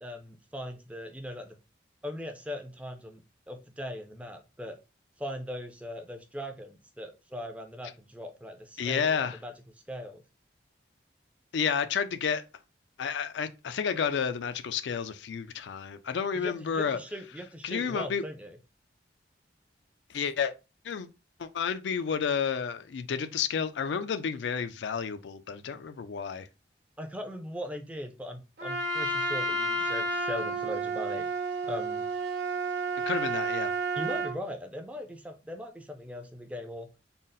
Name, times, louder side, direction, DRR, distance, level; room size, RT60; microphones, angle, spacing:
voice 1, 0.0-1.6 2.0-4.8 5.2-9.5 9.9-10.2 16.3-18.6 27.0-31.3 31.6-32.1 34.0-36.9, equal, 5° right, 0.4 m, -39 dB
voice 2, 8.8-9.4 11.5-12.4 13.0-17.0 17.6-18.2 20.1-20.5 20.8-21.1 21.4-26.5 33.1-33.7, left 6 dB, 80° left, 0.4 m, -30 dB
Trumpet, 28.6-34.4, right 3 dB, 65° right, 1.0 m, -31 dB
3.8 x 2.0 x 3.9 m
head